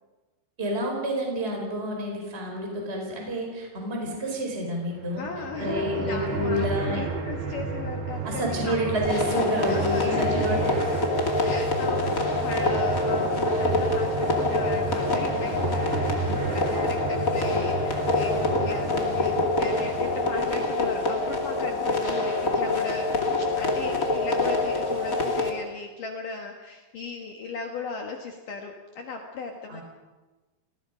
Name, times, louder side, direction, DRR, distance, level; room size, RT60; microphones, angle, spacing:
voice 1, 0.6-5.2 5.6-7.0 8.2-10.9 29.7-29.8, equal, 15° right, 0 dB, 4.4 m, -29 dB
sound 1, 5.0-20.7, right 4 dB, 65° right, 5.1 m, -32 dB
voice 2, 5.1-9.0 9.7-10.7 11.4-29.8, left 4 dB, 60° left, 2 dB, 2.6 m, -37 dB
sound 2, 9.0-25.5, left 2 dB, 25° left, 1.9 m, -26 dB
28.5 x 19.5 x 5.2 m, 1.2 s
omnidirectional pair, 5.2 m